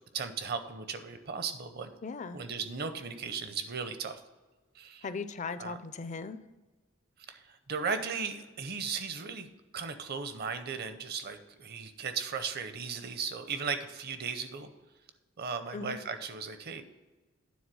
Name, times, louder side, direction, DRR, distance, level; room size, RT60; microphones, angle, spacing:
voice 1, 0.1-1.9 2.3-4.2 4.8-5.0 5.6-5.8 7.3-9.5 9.7-14.7 15.4-16.8, right 5 dB, 50° right, 9 dB, 0.7 m, -36 dB
voice 2, 2.0-2.4 5.0-6.4 15.7-16.0, left 4 dB, 35° left, 12 dB, 0.4 m, -38 dB
9.4 x 3.7 x 6.1 m, 1.2 s
head